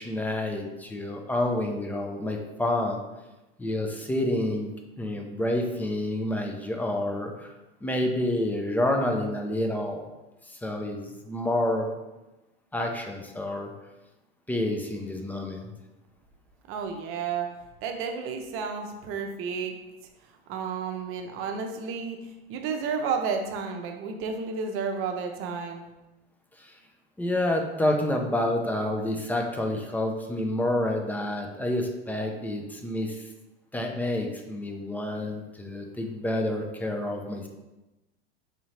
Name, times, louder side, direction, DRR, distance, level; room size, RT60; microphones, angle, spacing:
voice 1, 0.0-3.0 3.6-4.7 5.0-7.5 7.8-10.0 10.5-11.9 12.7-13.7 14.5-15.6 26.6-26.7 27.2-33.2 33.7-37.5, left 1 dB, 5° left, 2 dB, 0.3 m, -28 dB
voice 2, 16.7-17.5 17.8-19.8 20.5-25.8, right 5 dB, 50° right, 4 dB, 0.7 m, -31 dB
4.2 x 2.6 x 3.1 m, 1.0 s
hypercardioid pair, 105°, 29 cm